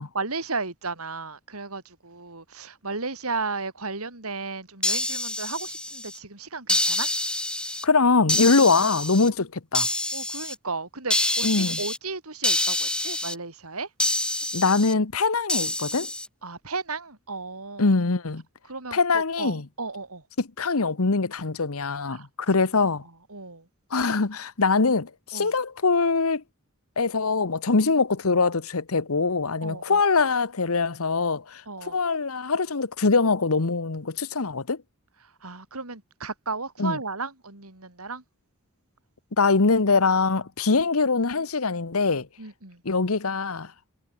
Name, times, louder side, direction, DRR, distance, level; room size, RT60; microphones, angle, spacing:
voice 1, 0.1-7.1 10.1-13.9 16.4-18.0 18.7-20.2 22.1-22.3 23.0-23.7 25.3-25.5 29.6-30.0 31.7-32.0 35.2-38.2 42.4-42.8, right 3 dB, 75° right, 4.2 m, -34 dB
sound 1, 4.8-6.2 6.7-7.9 8.3-9.3 9.7-10.6 11.1-12.0 12.4-13.4 14.0-14.9 15.5-16.3, left 1 dB, 5° left, 3.5 m, -26 dB
voice 2, 7.8-9.9 11.4-11.8 14.5-16.1 17.8-18.4 18.9-19.6 20.4-23.0 23.9-26.4 27.0-34.8 36.8-37.0 39.4-42.3 42.8-43.7, left 4 dB, 70° left, 1.1 m, -23 dB
head